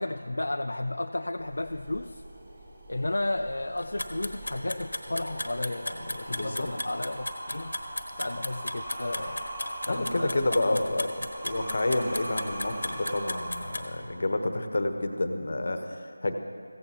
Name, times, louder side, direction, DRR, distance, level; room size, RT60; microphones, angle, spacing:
voice 1, 0.0-2.2 2.9-7.8 8.2-9.5 9.9-11.3, left 2 dB, 65° left, 6 dB, 0.4 m, -33 dB
sound 1, 1.4-14.4, right 1 dB, 30° right, 2.3 m, -41 dB
sound 2, 3.8-13.8, left 1 dB, 85° left, 1.1 m, -34 dB
voice 2, 6.3-6.7 9.9-11.1 11.4-16.3, left 2 dB, 50° left, 6 dB, 1.0 m, -29 dB
16.0 x 15.5 x 2.9 m, 2.5 s
figure-of-eight pair, 170°, 0 cm